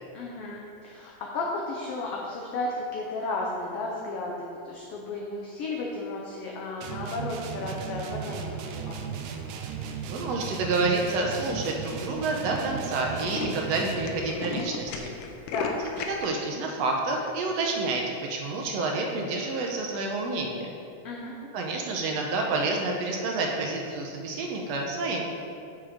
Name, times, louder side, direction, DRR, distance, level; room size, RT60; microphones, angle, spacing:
voice 1, 0.1-9.0 15.5-15.7 21.0-21.4, left 2 dB, 70° left, -2 dB, 1.5 m, -34 dB
sound 1, 6.8-14.3, right 7 dB, 90° right, 2.1 m, -36 dB
voice 2, 10.1-15.1 16.0-20.7 21.5-25.2, right 3 dB, 70° right, 0 dB, 1.8 m, -29 dB
Tools, 10.2-10.6 11.2-11.3 11.6-11.7 11.9-12.1 12.4-12.5 12.8-16.3, left 5 dB, 90° left, 2.1 m, -35 dB
6.6 x 5.9 x 4.9 m, 2.5 s
omnidirectional pair, 3.4 m